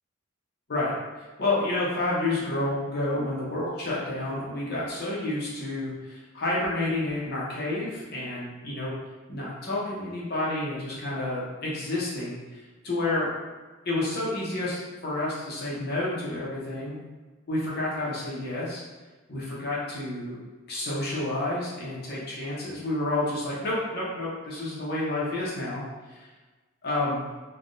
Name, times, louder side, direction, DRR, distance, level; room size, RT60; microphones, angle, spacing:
voice 1, 0.7-8.9 9.3-13.3 13.8-17.0 17.5-18.8 19.3-20.4 20.7-25.8 26.1-26.2 26.8-27.3, left 2 dB, 50° left, -6 dB, 0.8 m, -30 dB
3.4 x 2.2 x 2.6 m, 1.2 s
head